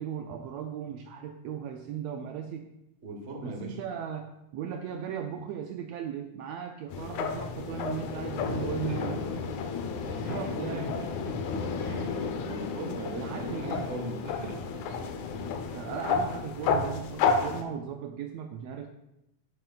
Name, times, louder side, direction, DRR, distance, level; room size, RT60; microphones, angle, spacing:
voice 1, 0.0-2.7 3.4-9.2 10.0-11.0 13.1-13.9 15.7-18.9, right 8 dB, 80° right, 4 dB, 1.5 m, -37 dB
voice 2, 3.0-3.8 8.8-9.4 10.2-11.3 11.8-14.8, right 1 dB, 45° right, 2 dB, 0.8 m, -40 dB
sound 1, 6.9-17.6, left 5 dB, 80° left, 2.1 m, -31 dB
10.5 x 7.9 x 2.3 m, 0.89 s
omnidirectional pair, 3.3 m